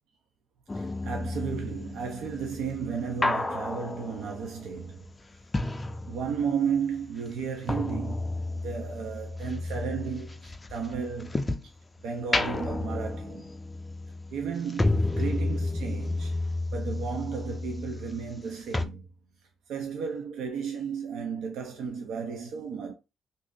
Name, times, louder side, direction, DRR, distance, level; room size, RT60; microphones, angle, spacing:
sound 1, 0.7-6.7 6.9-11.8 12.2-18.5 18.7-18.9, left 2 dB, 20° left, 0.3 m, -32 dB
voice 1, 0.7-5.1 6.0-8.2 8.6-11.5 12.0-13.5 14.3-16.3 16.7-19.0 19.7-22.9, right 6 dB, 85° right, 0.6 m, -33 dB
2.7 x 2.6 x 3.7 m
cardioid pair, 115°, 0 cm